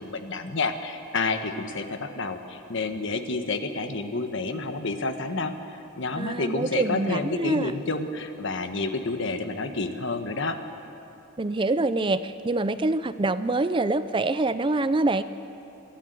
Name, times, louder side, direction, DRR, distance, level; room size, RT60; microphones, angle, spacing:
voice 1, 0.0-5.5 6.0-10.6, left 3 dB, 60° left, 7 dB, 1.4 m, -29 dB
voice 2, 6.1-7.7 11.4-15.2, right 2 dB, 25° right, 13 dB, 0.5 m, -25 dB
27.0 x 12.0 x 9.3 m, 2.8 s
head